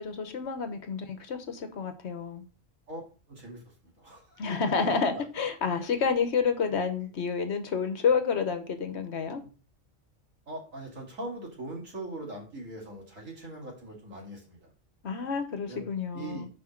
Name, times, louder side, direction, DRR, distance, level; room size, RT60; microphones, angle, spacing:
voice 1, 0.0-2.4 4.4-9.4 15.0-16.5, left 5 dB, 60° left, 8 dB, 1.1 m, -29 dB
voice 2, 3.3-4.4 4.8-5.2 10.5-14.7 15.7-15.9 16.1-16.5, right 1 dB, 85° right, -1 dB, 2.7 m, -41 dB
6.2 x 5.1 x 4.3 m, 0.37 s
omnidirectional pair, 1.3 m